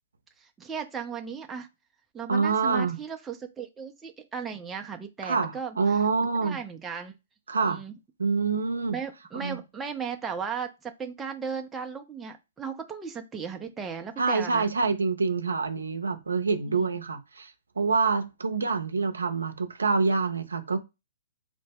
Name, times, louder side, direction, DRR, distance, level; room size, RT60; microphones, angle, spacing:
voice 1, 0.4-1.7 2.1-6.0 6.4-7.1 7.6-7.9 8.9-14.7 16.7-17.0, right 6 dB, 15° right, 0.4 m, -36 dB
voice 2, 2.3-3.0 5.2-6.6 7.5-7.8 8.2-9.0 9.3-9.6 14.2-20.8, right 4 dB, 80° right, 0.6 m, -26 dB
3.1 x 2.0 x 3.4 m
figure-of-eight pair, 125°, 0 cm